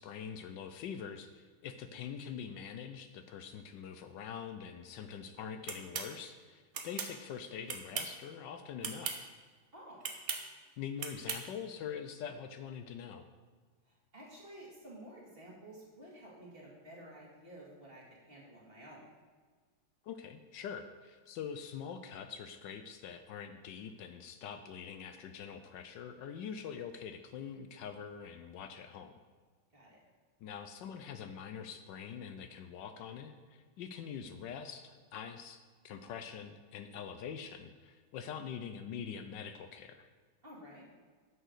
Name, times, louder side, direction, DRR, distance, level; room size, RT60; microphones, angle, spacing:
voice 1, 0.0-9.3 10.8-13.2 20.0-29.1 30.4-40.1, left 7 dB, 75° left, 8 dB, 1.2 m, -44 dB
sound 1, 5.7-6.1 6.7-7.1 7.7-8.2 8.8-9.2 10.0-10.4 11.0-11.4, right 6 dB, 55° right, 1.3 m, -38 dB
voice 2, 9.7-10.1 13.8-19.0 29.7-30.0 40.4-40.8, right 1 dB, 30° right, -3 dB, 2.2 m, -52 dB
9.2 x 6.4 x 6.5 m, 1.5 s
omnidirectional pair, 2.1 m